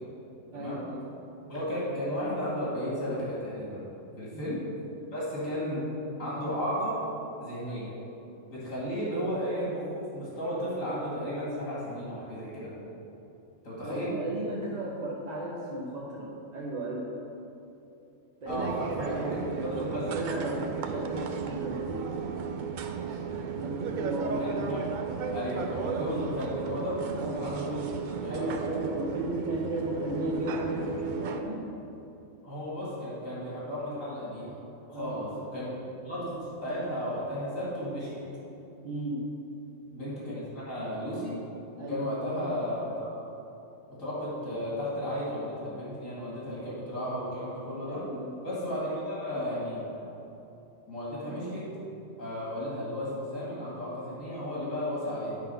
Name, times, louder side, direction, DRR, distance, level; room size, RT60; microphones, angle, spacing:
voice 1, 0.5-1.1 4.3-4.6 9.0-9.1 13.8-17.2 18.4-22.2 23.1-24.4 27.2-27.6 28.3-31.7 34.9-35.3 38.8-39.3 41.8-42.1 47.8-48.4, right 1 dB, 40° right, -6 dB, 0.8 m, -35 dB
voice 2, 1.5-3.8 4.2-4.6 5.1-5.9 6.2-7.0 7.4-7.9 8.5-12.7 13.6-14.1 18.5-20.2 24.4-24.9 25.3-27.0 27.3-28.5 32.4-34.6 34.9-38.3 39.9-41.4 41.8-43.1 44.0-48.0 48.4-50.1 50.9-51.7 52.2-55.4, equal, 85° left, -8 dB, 2.5 m, -34 dB
sound 1, 18.5-31.4, right 6 dB, 80° right, 0.4 m, -35 dB
9.1 x 3.8 x 5.6 m, 2.9 s
omnidirectional pair, 1.4 m